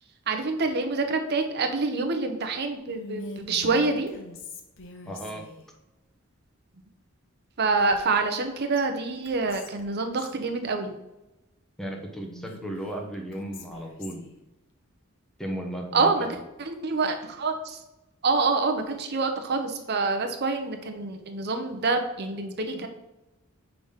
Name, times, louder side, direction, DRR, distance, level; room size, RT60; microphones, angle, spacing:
voice 1, 0.3-4.1 7.6-10.9 15.9-16.3 16.6-17.8 18.2-22.9, right 3 dB, 50° right, 5 dB, 0.8 m, -26 dB
Whispering, 2.9-5.7 7.7-8.5 8.8-8.9 9.2-10.4 12.2-14.4, left 2 dB, 65° left, 0.8 m, -44 dB
voice 2, 5.1-5.4 11.8-14.2 15.4-16.3, right 1 dB, ahead, 1 dB, 0.8 m, -35 dB
5.1 x 3.4 x 5.5 m, 0.95 s
head